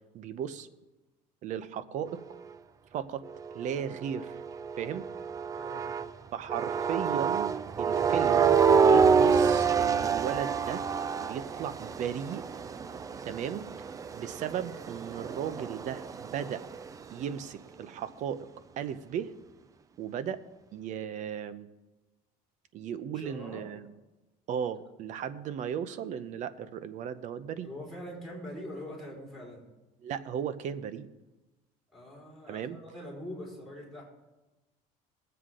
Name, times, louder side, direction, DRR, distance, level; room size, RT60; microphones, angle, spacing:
voice 1, 0.1-0.7 1.4-2.2 2.9-3.2 3.5-4.4 4.8-5.0 6.3-7.5 7.8-10.8 11.2-12.4 13.2-13.7 14.1-16.6 17.1-18.5 18.8-19.3 20.0-20.4 20.7-21.7 22.7-23.9 24.5-27.7 30.0-31.1 32.5-32.8, right 8 dB, 50° right, 13 dB, 0.8 m, -36 dB
sound 1, 3.2-6.1 6.5-16.9, right 6 dB, 20° right, 0.4 m, -27 dB
voice 2, 5.5-6.0 23.1-23.7 27.6-29.7 31.9-34.0, left 1 dB, ahead, -4 dB, 5.0 m, -43 dB
20.0 x 7.9 x 3.8 m, 1.1 s
cardioid pair, 135°, 16 cm